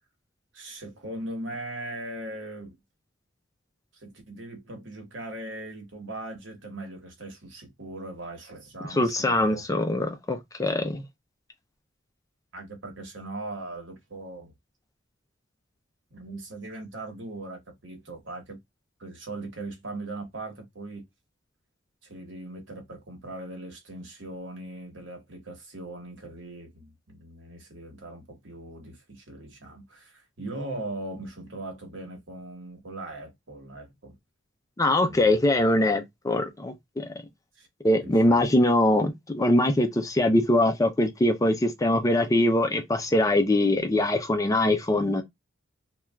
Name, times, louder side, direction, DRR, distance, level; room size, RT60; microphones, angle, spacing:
voice 1, 0.5-2.8 3.9-9.7 12.5-14.5 16.1-18.6 19.0-21.0 22.0-34.1 35.0-35.6 37.6-37.7 38.0-38.5, right 2 dB, 70° right, 1.2 m, -39 dB
voice 2, 8.9-11.0 34.8-37.1 37.8-45.2, left 1 dB, 15° left, 0.4 m, -23 dB
3.1 x 2.3 x 2.3 m
head